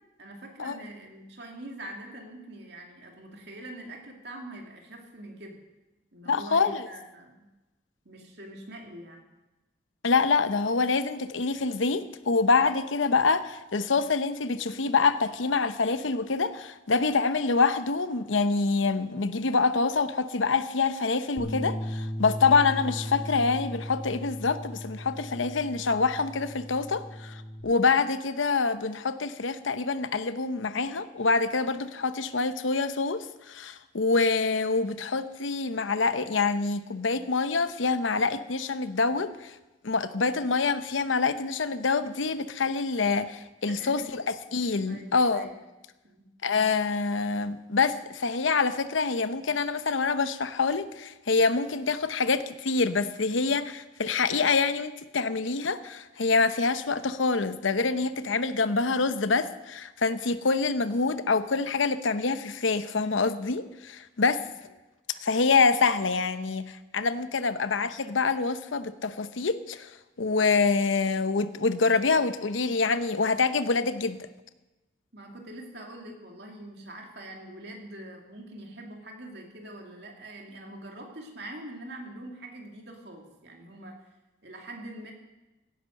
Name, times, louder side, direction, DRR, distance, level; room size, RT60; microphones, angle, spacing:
voice 1, 0.2-5.6 6.1-7.5 8.0-9.2 43.7-44.2 44.9-45.6 46.0-46.3 75.1-84.0 84.4-85.1, right 1 dB, 60° right, 1 dB, 2.7 m, -44 dB
voice 2, 6.3-6.8 10.0-27.3 27.6-39.5 39.8-45.5 46.4-64.4 65.2-69.9 70.2-74.3, left 4 dB, 85° left, 12 dB, 0.8 m, -26 dB
Bass guitar, 21.4-27.6, equal, 15° left, 4.9 m, -37 dB
16.5 x 10.0 x 6.5 m, 1.0 s
head